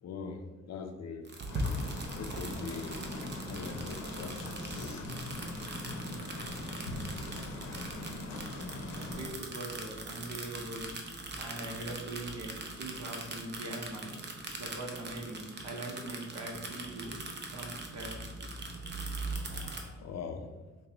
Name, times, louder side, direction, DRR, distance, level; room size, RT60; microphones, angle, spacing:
voice 1, 0.0-1.3 2.1-3.1 3.4-5.1 6.4-6.5 16.1-16.2 19.4-20.6, left 5 dB, 60° left, 6 dB, 0.5 m, -43 dB
sound 1, 1.2-19.8, right 2 dB, 35° right, 0.7 m, -41 dB
sound 2, 1.5-9.3, left 2 dB, 85° left, 0.8 m, -40 dB
voice 2, 8.9-10.9 11.4-14.2 14.6-17.2 17.5-18.3, right 1 dB, 60° right, 1 dB, 0.9 m, -42 dB
5.1 x 2.2 x 2.9 m, 1.2 s
cardioid pair, 90°, 30 cm